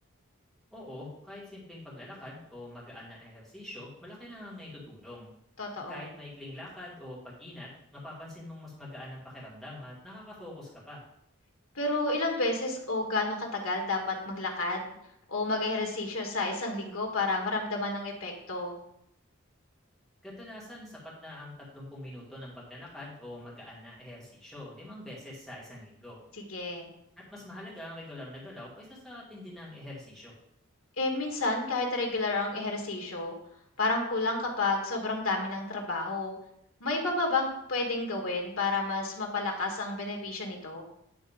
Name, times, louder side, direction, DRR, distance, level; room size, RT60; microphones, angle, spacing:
voice 1, 0.7-5.3 5.9-11.1 20.2-26.2 27.2-30.3, left 1 dB, ahead, -7 dB, 2.2 m, -45 dB
voice 2, 5.6-6.1 11.8-14.9 15.3-18.8 26.5-26.9 31.0-33.4 33.8-36.3 36.8-40.8, left 2 dB, 85° left, 1 dB, 1.7 m, -30 dB
10.0 x 3.5 x 5.0 m, 0.77 s
head